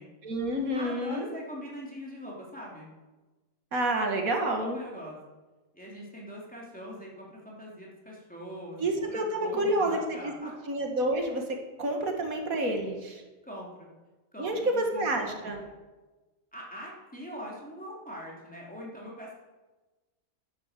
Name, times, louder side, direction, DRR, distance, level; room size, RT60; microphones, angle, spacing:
voice 1, 0.2-1.3 3.7-4.8 8.8-10.3 10.7-11.4 11.8-13.2 14.4-15.6, right 1 dB, 90° right, 3 dB, 2.3 m, -29 dB
voice 2, 0.7-2.9 4.6-5.2 5.7-10.6 13.4-13.9 14.3-15.6 16.5-19.3, equal, 5° left, -4 dB, 3.4 m, -42 dB
11.0 x 10.5 x 7.5 m, 1.2 s
omnidirectional pair, 1.4 m